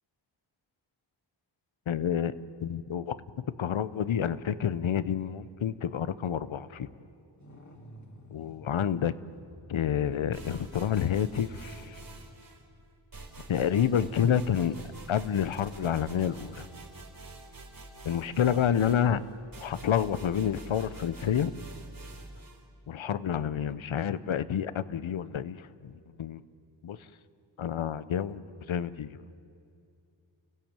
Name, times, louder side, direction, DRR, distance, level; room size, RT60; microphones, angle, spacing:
voice 1, 1.9-2.3 2.6-3.2 3.6-6.9 8.3-9.1 9.7-12.0 13.5-14.7 15.1-16.7 18.0-19.2 19.6-21.5 22.9-26.4 26.8-27.0 27.6-29.2, left 9 dB, 80° left, 15 dB, 0.9 m, -29 dB
sound 1, 7.4-12.8 15.9-16.0, equal, 35° left, 2.4 m, -54 dB
sound 2, 10.3-12.6 13.1-22.6, right 2 dB, 45° right, 4.2 m, -47 dB
29.5 x 16.0 x 8.9 m, 2.5 s
wide cardioid pair, 80°, 47 cm